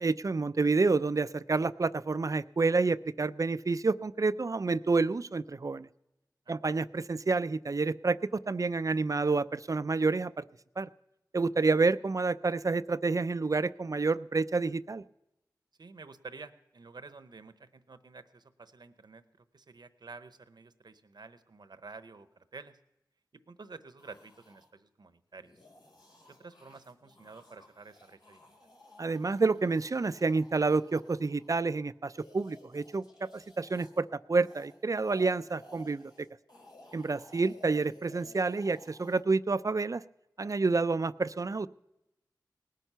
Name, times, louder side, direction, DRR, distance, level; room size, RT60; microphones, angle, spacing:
voice 1, 0.0-5.9 6.5-10.4 10.8-10.9 11.3-15.0 29.0-36.3 36.9-40.0 40.4-41.7, right 3 dB, 50° right, 15 dB, 0.4 m, -29 dB
voice 2, 15.8-22.8 23.5-25.5 26.3-28.4 37.3-37.4, right 4 dB, 70° right, 12 dB, 0.9 m, -50 dB
sound 1, 24.0-24.7 25.3-34.0 34.3-39.2, left 1 dB, 75° left, 3.2 m, -56 dB
19.0 x 9.2 x 5.6 m, 0.90 s
cardioid pair, 40°, 7 cm